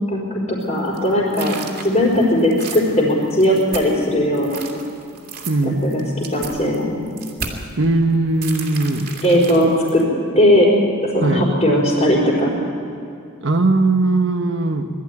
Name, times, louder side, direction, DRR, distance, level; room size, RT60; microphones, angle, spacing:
voice 1, 0.5-1.6 1.8-4.6 5.6-6.0 6.3-7.0 9.2-10.0 10.3-10.7 11.0-12.5, left 1 dB, 30° left, -9 dB, 4.4 m, -17 dB
sound 1, 0.6-4.1 4.3-7.7 8.4-10.0, right 5 dB, 45° right, 2.5 m, -34 dB
voice 2, 5.5-5.8 7.8-9.1 11.2-11.4 13.4-14.9, right 2 dB, 60° right, 4 dB, 1.1 m, -19 dB
21.0 x 13.5 x 9.5 m, 2.6 s
head